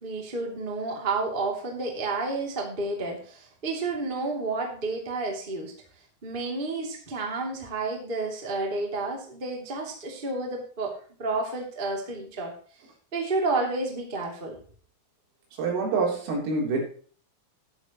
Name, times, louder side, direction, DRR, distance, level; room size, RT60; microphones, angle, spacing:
voice 1, 0.0-5.7 6.2-10.9 11.2-12.5 13.1-14.6, right 3 dB, 15° right, 0 dB, 1.7 m, -30 dB
voice 2, 15.6-16.8, right 3 dB, 85° right, -1 dB, 6.3 m, -26 dB
12.5 x 11.5 x 3.1 m, 0.43 s
omnidirectional pair, 5.8 m